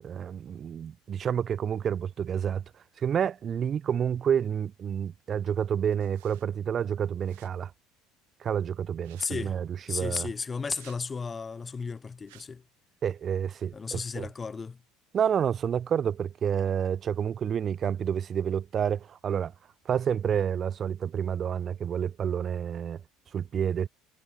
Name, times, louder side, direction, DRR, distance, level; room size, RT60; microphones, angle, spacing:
voice 1, 0.0-2.6 3.0-7.7 8.4-10.3 13.0-14.2 15.1-19.5 19.9-23.0 23.3-23.9, right 8 dB, 40° right, 0.5 m, -29 dB
sound 1, 5.9-6.5 7.2-7.5 8.9-9.3 10.6-11.0 12.2-12.4, right 26 dB, 70° right, 1.4 m, -56 dB
voice 2, 9.2-9.6 9.9-12.6 13.7-14.8, left 5 dB, 30° left, 0.9 m, -34 dB
hypercardioid pair, 65°, 0 cm